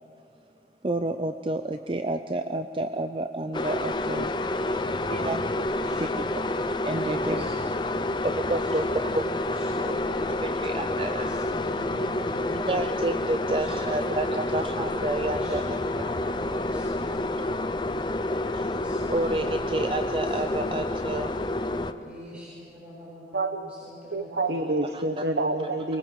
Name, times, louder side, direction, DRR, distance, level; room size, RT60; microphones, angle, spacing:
voice 1, 0.8-4.3 5.1-5.7 6.0-6.3 6.8-7.5 8.2-9.2 10.4-11.3 12.7-16.0 18.5-18.7 19.1-21.3 24.9-25.3, right 2 dB, 30° right, 8 dB, 0.5 m, -30 dB
sound 1, 3.5-21.9, left 2 dB, 25° left, 0.7 m, -29 dB
sound 2, 4.4-9.7 10.0-18.5 18.9-19.6, equal, 60° left, 4.9 m, -46 dB
voice 2, 4.4-6.5 7.1-10.4 11.0-12.7 13.3-14.0 15.2-17.6 18.5-20.0 20.3-21.3 22.0-24.5 25.9-26.0, equal, 10° right, -8 dB, 7.1 m, -44 dB
voice 3, 23.3-23.7 24.1-26.0, right 2 dB, 70° right, 6 dB, 1.1 m, -27 dB
24.0 x 22.5 x 7.5 m, 2.7 s
head